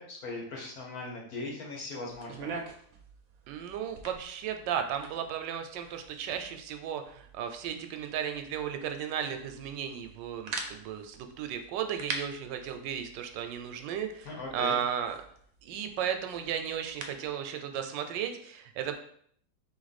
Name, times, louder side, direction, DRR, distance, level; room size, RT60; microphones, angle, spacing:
voice 1, 0.0-2.5 14.2-14.8, left 2 dB, 60° left, -1 dB, 1.4 m, -39 dB
sound 1, 2.1-17.3, right 4 dB, 70° right, 0.9 m, -45 dB
voice 2, 3.5-15.2 15.6-18.9, right 8 dB, 85° right, 7 dB, 1.2 m, -35 dB
3.7 x 3.2 x 4.0 m, 0.63 s
omnidirectional pair, 1.9 m